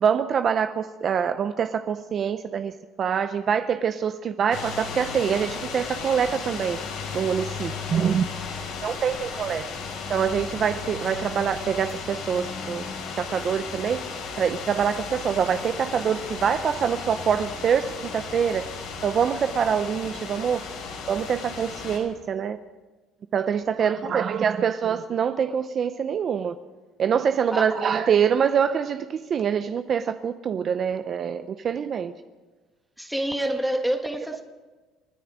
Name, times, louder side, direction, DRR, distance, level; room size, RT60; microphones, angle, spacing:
voice 1, 0.0-6.8 7.1-8.2 8.8-9.6 10.1-12.8 13.2-14.0 14.4-18.7 19.0-20.6 21.1-22.6 23.3-26.6 27.0-32.1, right 7 dB, 40° right, 10 dB, 0.6 m, -25 dB
sound 1, 4.5-22.0, left 5 dB, 70° left, 5.0 m, -35 dB
voice 2, 23.8-24.3 27.5-27.8 33.0-34.4, right 1 dB, 5° right, 4 dB, 1.8 m, -28 dB
28.5 x 10.0 x 5.0 m, 1.3 s
cardioid pair, 120°, 0 cm